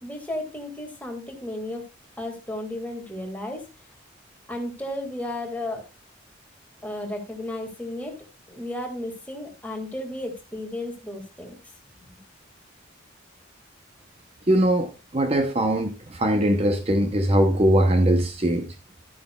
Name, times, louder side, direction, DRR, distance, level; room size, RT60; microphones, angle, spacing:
voice 1, 0.0-1.9 2.2-3.7 4.5-5.8 6.8-8.1 8.5-11.6 12.0-12.1, left 1 dB, 10° left, 1.9 m, -33 dB
voice 2, 14.5-18.7, right 1 dB, 30° right, 0.7 m, -21 dB
12.0 x 9.2 x 2.3 m
head